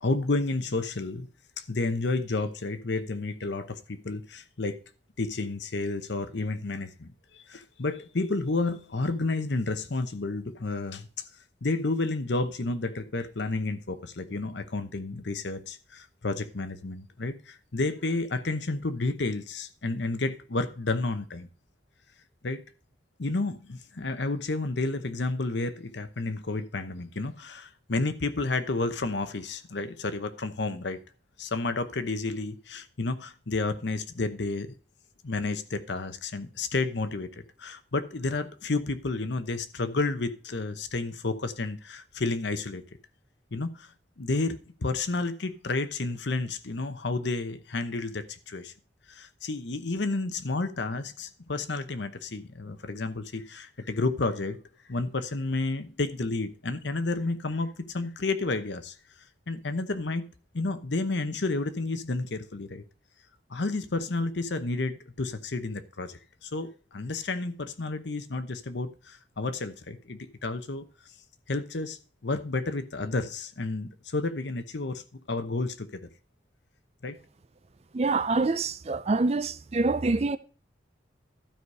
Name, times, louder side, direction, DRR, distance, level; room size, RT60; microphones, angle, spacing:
voice 1, 0.0-1.3 1.6-4.8 5.2-7.1 7.3-11.2 11.6-21.5 22.4-22.6 23.2-31.0 31.4-34.7 35.2-42.8 43.5-43.9 44.2-48.7 49.1-54.6 54.9-58.9 59.5-60.3 60.5-62.8 63.5-70.8 71.5-75.0 75.3-76.0 77.0-77.2, left 3 dB, 65° left, 0.8 m, -31 dB
voice 2, 77.9-80.4, right 3 dB, 35° right, 0.4 m, -26 dB
12.5 x 4.9 x 5.4 m
head